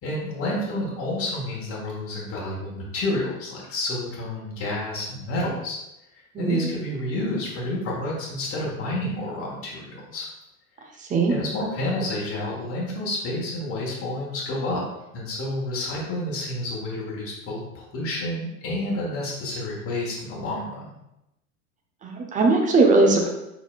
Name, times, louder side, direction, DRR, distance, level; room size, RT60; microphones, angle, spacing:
voice 1, 0.0-5.8 6.4-10.3 11.3-14.8 15.1-20.9, left 1 dB, 30° left, -4 dB, 1.5 m, -29 dB
voice 2, 6.3-6.7 11.1-11.3 22.0-23.3, right 3 dB, 20° right, 2 dB, 0.7 m, -19 dB
4.7 x 4.4 x 2.4 m, 0.88 s
figure-of-eight pair, 85°, 43 cm